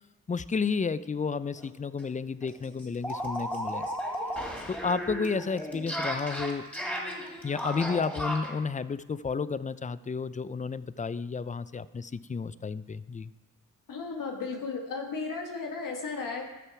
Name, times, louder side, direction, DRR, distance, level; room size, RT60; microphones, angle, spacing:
voice 1, 0.3-3.9 4.7-6.7 7.4-13.3, left 5 dB, 25° left, 17 dB, 0.4 m, -32 dB
sound 1, 1.6-1.7 2.0-2.1 2.4-8.6, equal, 5° left, 3.0 m, -35 dB
voice 2, 13.9-16.4, left 4 dB, 75° left, 2 dB, 1.5 m, -34 dB
13.0 x 6.9 x 4.7 m, 1.1 s
cardioid pair, 55°, 32 cm